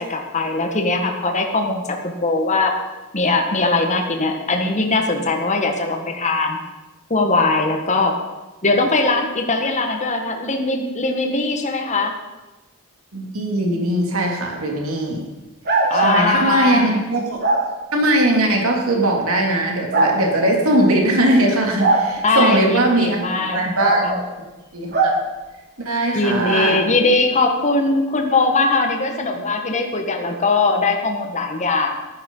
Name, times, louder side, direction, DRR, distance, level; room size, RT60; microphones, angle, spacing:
voice 1, 0.0-2.7 3.1-6.6 7.1-8.1 8.6-12.1 15.9-16.9 22.2-23.6 24.0-24.1 26.1-31.9, left 3 dB, 30° left, 3 dB, 1.7 m, -20 dB
voice 2, 13.1-15.2 15.9-17.4 17.9-24.0 24.7-25.2 25.8-26.9, right 1 dB, 65° right, 1 dB, 3.0 m, -19 dB
sound 1, 15.7-16.2 17.4-17.6 18.9-19.0 19.9-20.1 21.8-22.1 23.8-24.2 24.9-25.2, right 3 dB, 50° right, 3.0 m, -18 dB
15.0 x 12.0 x 5.6 m, 1.1 s
head